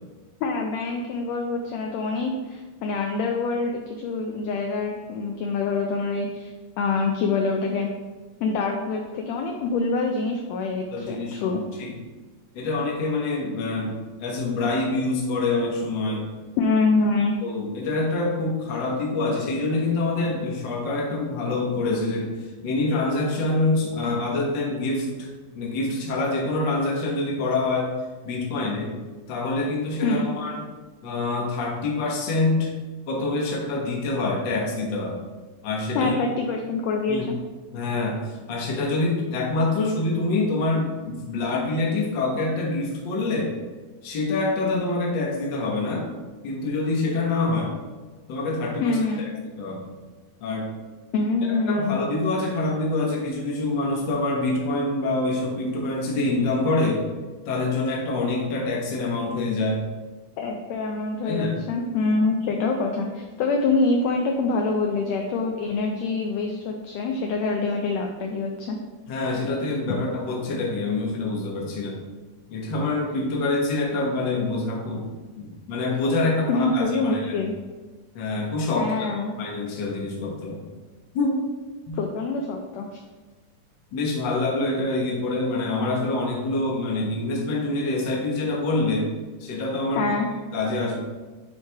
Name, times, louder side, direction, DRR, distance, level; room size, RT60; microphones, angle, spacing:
voice 1, 0.4-6.5 6.8-7.9 8.4-11.6 16.6-17.4 30.0-30.3 35.9-37.4 48.8-49.2 51.1-52.0 60.4-68.8 76.5-77.5 78.8-79.3 81.9-82.9 90.0-90.3, left 3 dB, 80° left, 2 dB, 1.5 m, -25 dB
voice 2, 10.9-12.0 12.5-16.3 17.4-22.4 22.6-27.9 28.2-28.9 29.3-30.6 31.0-32.7 33.1-35.2 35.6-36.2 37.1-37.3 37.7-43.6 44.0-46.1 46.4-47.7 48.3-49.0 49.6-49.9 50.4-50.7 51.5-57.0 57.4-59.8 61.2-61.6 69.1-72.0 72.5-75.1 75.3-77.5 78.1-80.6 81.1-81.4 81.9-82.0 83.9-89.1 89.4-90.1 90.5-91.0, left 2 dB, 55° left, -2 dB, 1.3 m, -26 dB
9.1 x 3.2 x 3.4 m, 1.3 s
omnidirectional pair, 3.5 m